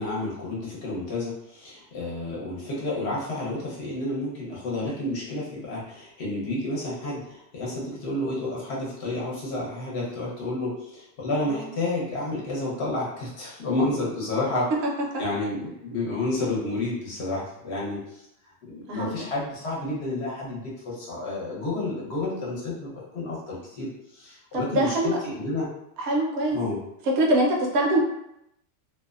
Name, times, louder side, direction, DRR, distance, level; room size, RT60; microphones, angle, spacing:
voice 1, 0.0-14.7 15.2-18.2 18.6-25.7 26.5-26.8, left 2 dB, 60° left, -5 dB, 1.0 m, -30 dB
voice 2, 11.4-11.7 18.9-19.1 24.5-25.2 26.0-26.6 27.2-28.0, right 1 dB, 65° right, 0 dB, 0.7 m, -24 dB
2.6 x 2.0 x 2.3 m, 0.80 s
omnidirectional pair, 1.3 m